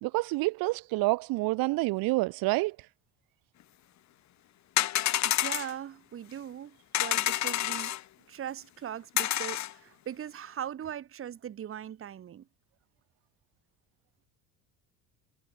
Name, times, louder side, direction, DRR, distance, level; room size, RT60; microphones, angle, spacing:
voice 1, 0.0-2.9, right 22 dB, 70° right, 1.1 m, -28 dB
sound 1, 4.8-5.7 6.9-8.0 9.2-9.7, left 13 dB, 50° left, 1.2 m, -28 dB
voice 2, 5.2-7.9 8.3-12.4, right 10 dB, 35° right, 1.5 m, -40 dB
cardioid pair, 115°, 37 cm